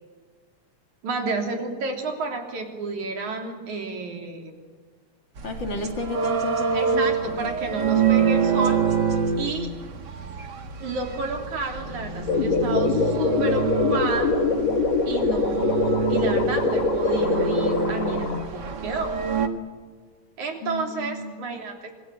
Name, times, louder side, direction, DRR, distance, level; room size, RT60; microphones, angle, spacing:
voice 1, 1.0-4.5 6.7-8.8 9.4-9.7 10.8-14.3 15.1-19.2 20.4-22.0, right 3 dB, 80° right, 3 dB, 4.7 m, -30 dB
voice 2, 5.4-7.4 20.6-21.4, left 3 dB, 40° left, 4 dB, 3.0 m, -32 dB
sound 1, 5.4-19.5, right 6 dB, 40° right, 1.9 m, -26 dB
sound 2, 12.3-18.4, left 3 dB, 65° left, 3.2 m, -23 dB
26.5 x 20.0 x 9.0 m, 1.5 s
omnidirectional pair, 3.3 m